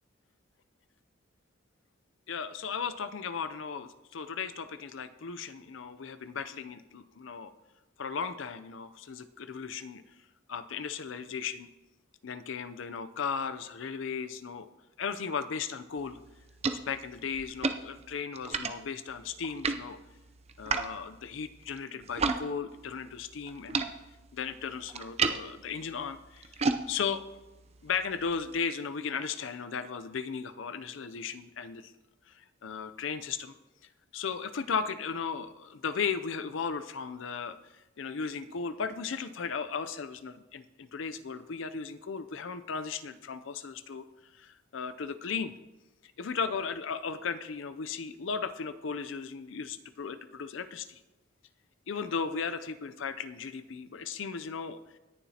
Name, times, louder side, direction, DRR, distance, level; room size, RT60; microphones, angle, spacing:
voice 1, 2.3-7.5 8.0-10.0 10.5-11.7 12.2-14.7 15.0-16.2 16.7-20.0 20.6-23.8 24.3-26.6 26.9-27.2 27.8-31.9 32.3-33.5 34.1-44.0 44.3-45.5 46.0-51.0 51.9-54.8, left 6 dB, 70° left, 11 dB, 0.5 m, -36 dB
sound 1, 16.0-22.4 22.7-28.6, right 4 dB, 30° right, 0.5 m, -35 dB
18.5 x 7.1 x 2.8 m, 1.1 s
head